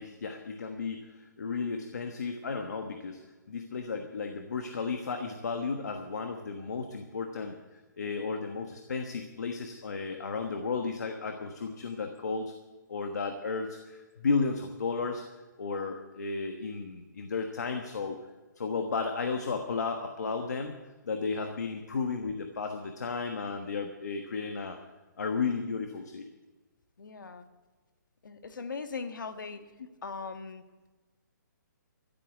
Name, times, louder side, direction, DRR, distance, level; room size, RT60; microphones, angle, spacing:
voice 1, 0.0-3.2 3.5-12.5 12.9-15.2 15.6-18.2 18.6-20.8 21.0-24.8 25.2-26.3, left 4 dB, 60° left, 5 dB, 1.4 m, -33 dB
voice 2, 27.0-27.4 28.2-29.6 30.0-30.6, left 4 dB, 80° left, 7 dB, 1.6 m, -39 dB
14.0 x 8.1 x 9.1 m, 1.2 s
hypercardioid pair, 180°, 10 cm